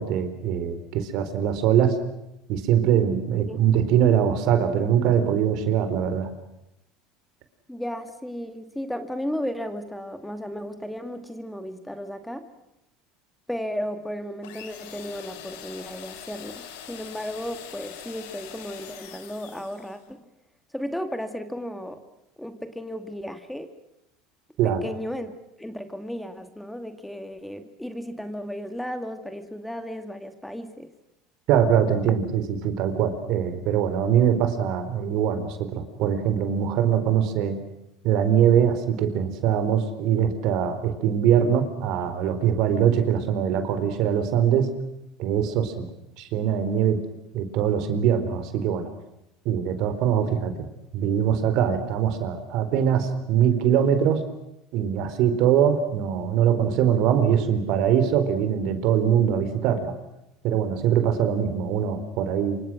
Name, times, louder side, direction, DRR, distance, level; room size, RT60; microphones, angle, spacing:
voice 1, 0.0-2.0 2.5-6.3 24.6-24.8 31.5-37.6 38.0-44.7 45.2-45.9 46.2-47.0 47.3-48.9 49.4-50.5 50.9-54.3 54.7-59.9 60.4-62.6, right 9 dB, 60° right, 9 dB, 4.2 m, -22 dB
voice 2, 7.7-12.5 13.5-20.2 20.7-22.0 22.4-23.7 24.6-25.3 25.6-30.9, equal, 5° left, 8 dB, 2.4 m, -34 dB
sound 1, 14.4-20.0, left 9 dB, 80° left, 4.4 m, -43 dB
27.5 x 25.0 x 6.3 m, 0.87 s
supercardioid pair, 115°, 0 cm